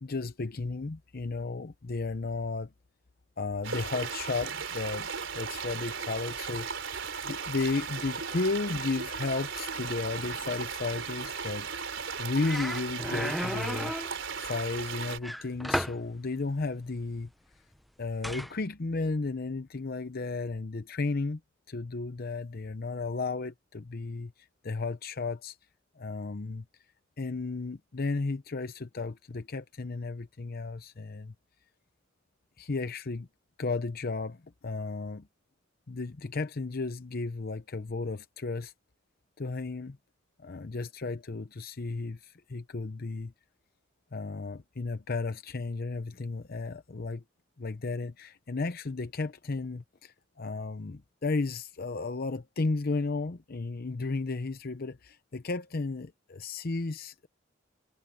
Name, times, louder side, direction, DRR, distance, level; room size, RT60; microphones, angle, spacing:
voice 1, 0.0-2.7 3.4-7.0 7.2-11.7 12.2-13.9 14.4-17.3 18.0-21.4 21.7-25.6 26.0-26.6 27.2-31.3 32.6-33.3 33.6-35.3 35.9-38.7 39.4-40.0 40.4-43.3 44.1-47.2 47.6-57.3, left 3 dB, 50° left, 0.7 m, -34 dB
sound 1, 3.6-15.2, right 6 dB, 80° right, 3.8 m, -36 dB
sound 2, 12.0-12.1 12.4-14.1 15.2-16.0 18.2-18.5, equal, ahead, 0.7 m, -33 dB
head